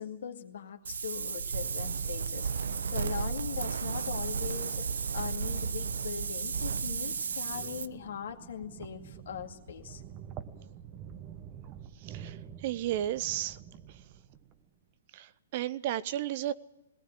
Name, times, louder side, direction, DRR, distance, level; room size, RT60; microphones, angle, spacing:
voice 1, 0.0-10.0, left 8 dB, 70° left, 4 dB, 2.2 m, -40 dB
Wind, 0.8-7.9, right 6 dB, 75° right, 0.8 m, -33 dB
sound 1, 5.5-14.7, right 9 dB, 30° right, 1.3 m, -48 dB
voice 2, 12.0-13.6 13.9-14.0 15.1-16.5, right 12 dB, 45° right, 16 dB, 0.8 m, -33 dB
18.5 x 18.0 x 9.3 m, 0.98 s
hypercardioid pair, 130°, 0 cm